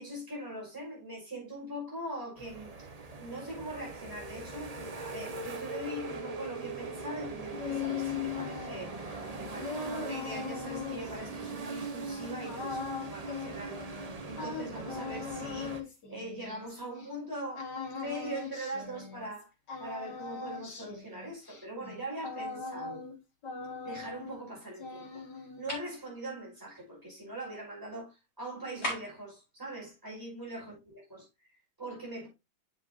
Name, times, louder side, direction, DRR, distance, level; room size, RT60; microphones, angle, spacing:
voice 1, 0.0-2.9 3.2-8.9 9.4-15.8 16.1-19.5 19.8-23.0 23.8-32.3, right 1 dB, 10° right, 5.3 m, -42 dB
sound 1, 2.4-15.8, right 3 dB, 30° right, 0.7 m, -41 dB
sound 2, 7.2-17.1 17.5-19.4 19.7-23.2 23.4-24.5 24.7-25.7, left 5 dB, 80° left, 2.5 m, -40 dB
sound 3, 25.7-25.9 28.8-29.3, equal, 40° left, 4.5 m, -36 dB
7.7 x 7.3 x 2.7 m
omnidirectional pair, 1.8 m